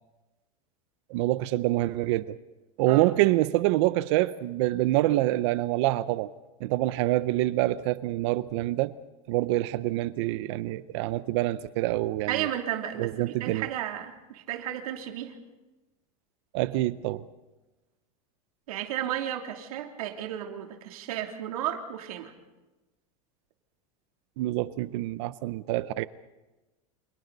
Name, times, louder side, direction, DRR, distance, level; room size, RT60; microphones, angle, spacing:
voice 1, 1.1-2.4 2.8-6.3 6.6-8.9 9.3-12.5 13.0-13.7 16.5-17.2 24.4-26.1, right 17 dB, 55° right, 0.7 m, -26 dB
voice 2, 12.3-15.3 18.7-22.3, right 11 dB, 85° right, 3.0 m, -33 dB
29.0 x 28.5 x 4.1 m
supercardioid pair, 160°, 18 cm